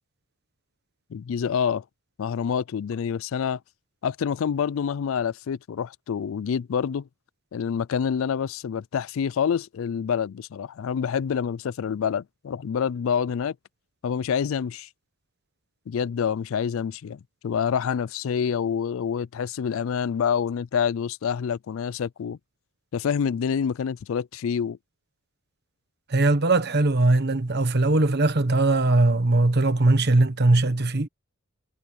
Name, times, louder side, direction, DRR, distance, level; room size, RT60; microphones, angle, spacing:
voice 1, 1.1-1.8 2.2-3.6 4.0-7.1 7.5-13.6 14.0-14.9 15.9-22.4 22.9-24.8, left 7 dB, 70° left, 0.4 m, -27 dB
voice 2, 26.1-31.1, right 2 dB, 50° right, 1.3 m, -20 dB
head